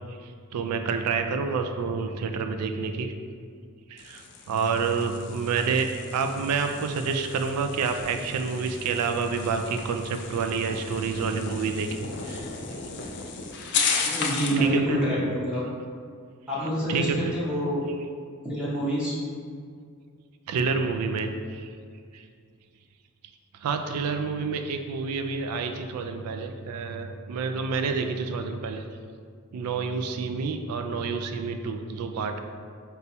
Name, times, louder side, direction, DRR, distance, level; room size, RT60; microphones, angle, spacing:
voice 1, 0.1-3.1 3.9-12.4 12.7-12.8 14.1-14.2 14.6-15.0 16.9-17.3 20.5-21.8 22.1-22.3 23.5-28.9 29.5-32.4, right 5 dB, 85° right, 6 dB, 0.3 m, -28 dB
Med Speed Skid Crash OS, 4.0-14.7, left 5 dB, 50° left, 0.4 m, -34 dB
voice 2, 13.7-15.7 16.5-17.9 18.4-19.1, equal, 5° right, -8 dB, 0.6 m, -27 dB
4.0 x 2.3 x 4.1 m, 2.1 s
head